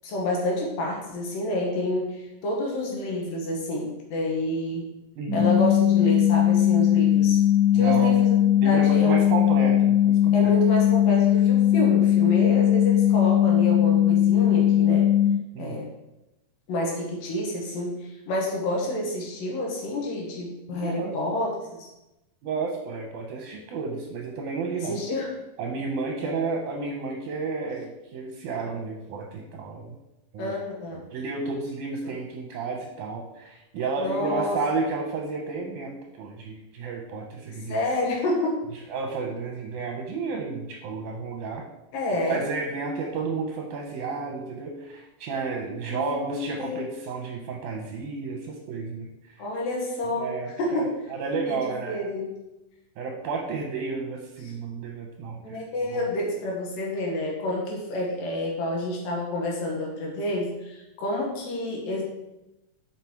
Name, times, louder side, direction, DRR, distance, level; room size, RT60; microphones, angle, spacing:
voice 1, 0.0-4.9 5.3-7.4 7.7-8.4 8.6-9.2 10.3-15.1 15.6-15.9 16.7-21.9 24.7-25.3 26.2-26.3 30.4-31.0 32.0-32.2 34.0-34.6 37.7-38.6 41.9-42.4 45.9-46.9 49.4-50.3 50.6-51.0 51.5-51.6 51.9-52.3 55.4-62.0, left 1 dB, 70° left, -1 dB, 3.1 m, -29 dB
voice 2, 5.2-5.5 7.7-8.2 8.6-10.5 15.5-15.8 20.7-21.1 22.4-25.0 25.6-30.0 30.3-30.6 31.1-37.8 38.9-41.7 42.3-49.1 50.2-52.0 53.0-55.6 55.9-56.0, right 4 dB, 75° right, 1 dB, 2.0 m, -32 dB
sound 1, 5.3-15.3, left 11 dB, 30° left, 2.1 m, -19 dB
5.8 x 5.7 x 4.5 m, 0.96 s
omnidirectional pair, 4.2 m